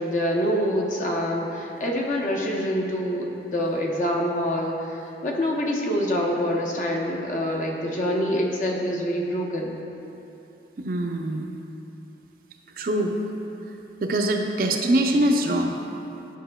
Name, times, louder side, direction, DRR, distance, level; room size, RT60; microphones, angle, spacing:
voice 1, 0.0-9.8, equal, 45° left, -1 dB, 0.7 m, -26 dB
voice 2, 10.8-11.4 12.8-13.2 14.0-15.8, right 1 dB, 50° right, 3 dB, 0.4 m, -23 dB
10.0 x 5.8 x 2.2 m, 2.9 s
head